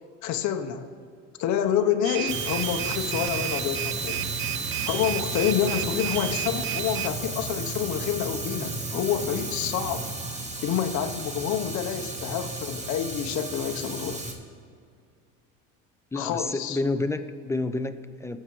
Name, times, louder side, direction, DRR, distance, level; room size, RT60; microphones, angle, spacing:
voice 1, 0.2-0.9 1.4-4.3 4.9-14.2 16.1-16.8, left 9 dB, 50° left, 5 dB, 1.0 m, -28 dB
sound 1, 2.0-7.1, right 12 dB, 35° right, 0.4 m, -32 dB
Fire, 2.3-14.3, right 2 dB, 20° right, 1.4 m, -34 dB
voice 2, 16.1-18.4, left 2 dB, 10° left, 9 dB, 0.6 m, -29 dB
19.5 x 6.8 x 3.2 m, 2.3 s
supercardioid pair, 90°, 36 cm